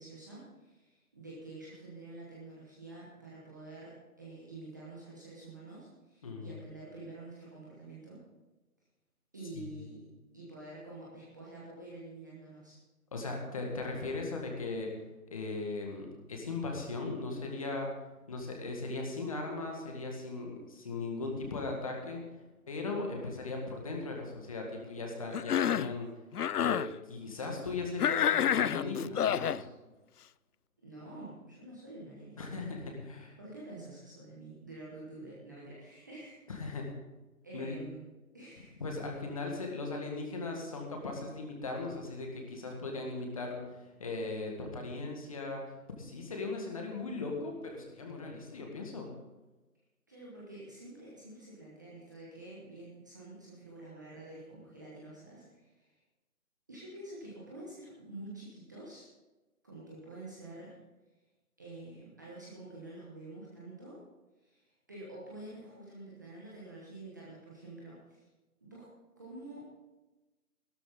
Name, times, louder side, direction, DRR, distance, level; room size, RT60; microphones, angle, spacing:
voice 1, 0.0-8.2 9.3-10.1 10.3-12.8 30.8-32.6 33.4-36.4 37.4-38.0 38.3-38.7 50.1-56.0 56.7-59.1 59.6-60.8 61.6-64.0 64.4-68.3 68.6-68.9 69.2-69.6, right 2 dB, 10° right, -6 dB, 1.1 m, -48 dB
voice 2, 6.2-6.5 9.5-9.6 13.1-14.9 15.3-17.9 18.3-22.2 22.7-26.1 26.6-29.7 32.4-33.4 36.5-36.9 37.5-37.8 38.8-43.6 44.0-45.6 46.0-49.1, left 3 dB, 25° left, 1 dB, 1.8 m, -38 dB
Cough, 25.3-25.9 26.3-26.9 28.0-29.6, left 9 dB, 80° left, 0.5 m, -28 dB
16.5 x 13.0 x 3.9 m, 1.1 s
figure-of-eight pair, 165°, 45 cm